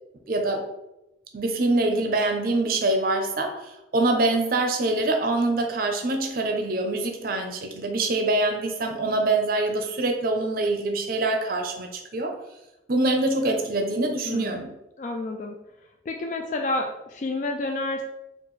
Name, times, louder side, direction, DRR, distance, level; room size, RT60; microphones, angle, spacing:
voice 1, 0.3-0.6 1.3-12.3 12.9-14.7, right 2 dB, 55° right, 4 dB, 0.6 m, -24 dB
voice 2, 14.2-14.6 15.0-15.6 16.1-18.0, left 2 dB, 45° left, 3 dB, 0.3 m, -29 dB
4.3 x 2.4 x 3.1 m, 0.91 s
head